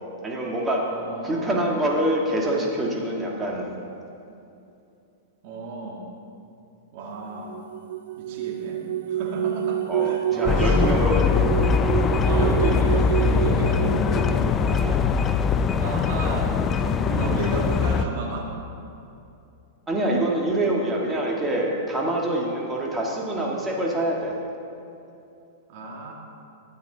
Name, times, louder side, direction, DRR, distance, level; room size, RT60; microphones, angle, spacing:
voice 1, 0.2-0.9 1.2-3.7 9.9-11.3 11.6-11.7 14.6-15.2 19.9-24.3, right 1 dB, 15° right, -2 dB, 1.7 m, -25 dB
voice 2, 0.9-1.5 5.4-6.0 6.9-7.5 8.2-8.8 9.1-10.8 12.2-14.3 15.8-18.5 25.7-26.1, right 2 dB, 55° right, -1 dB, 1.6 m, -33 dB
sound 1, 7.5-15.3, right 11 dB, 75° right, 0.4 m, -28 dB
sound 2, 10.5-18.1, left 5 dB, 25° left, 0.4 m, -22 dB
12.5 x 8.9 x 3.9 m, 2.7 s
hypercardioid pair, 135°, 0 cm